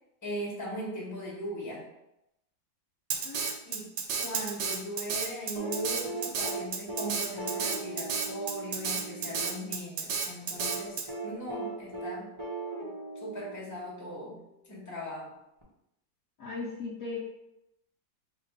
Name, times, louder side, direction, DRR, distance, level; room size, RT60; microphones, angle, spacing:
voice 1, 0.2-1.9 3.6-3.9 4.2-12.3 13.2-14.4 14.7-15.4, equal, 10° left, -6 dB, 1.1 m, -39 dB
Drum kit, 3.1-11.0, right 6 dB, 75° right, 1.3 m, -32 dB
voice 2, 3.2-3.5 16.4-17.2, left 3 dB, 60° left, -6 dB, 1.0 m, -37 dB
sound 1, 5.5-9.6 10.6-14.2 15.6-15.7, right 3 dB, 25° right, 0.7 m, -38 dB
3.2 x 2.9 x 4.5 m, 0.87 s
omnidirectional pair, 2.1 m